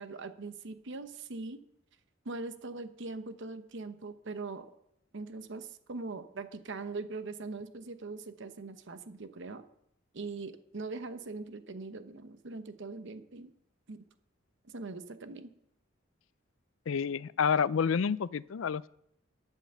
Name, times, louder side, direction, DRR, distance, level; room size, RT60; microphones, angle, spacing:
voice 1, 0.0-1.6 2.2-4.7 5.1-9.6 10.1-13.5 13.9-14.0 14.6-15.5, right 3 dB, 65° right, 10 dB, 0.9 m, -41 dB
voice 2, 16.9-18.9, left 6 dB, 75° left, 19 dB, 0.4 m, -29 dB
11.5 x 8.3 x 6.7 m, 0.75 s
head